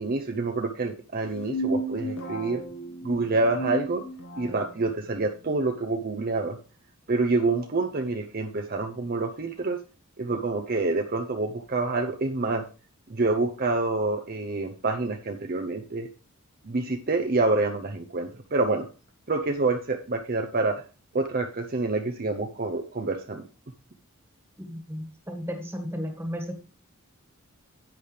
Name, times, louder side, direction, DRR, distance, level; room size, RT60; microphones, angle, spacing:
voice 1, 0.0-2.6 3.0-4.0 4.4-6.6 7.1-9.8 10.2-12.6 13.1-16.1 16.6-18.9 19.3-20.8 21.1-23.5, right 3 dB, 45° right, 5 dB, 0.7 m, -27 dB
sound 1, 1.2-4.7, equal, 65° left, 2.0 m, -33 dB
voice 2, 24.6-26.5, equal, 10° right, 4 dB, 1.7 m, -34 dB
10.5 x 8.4 x 3.3 m, 0.34 s
head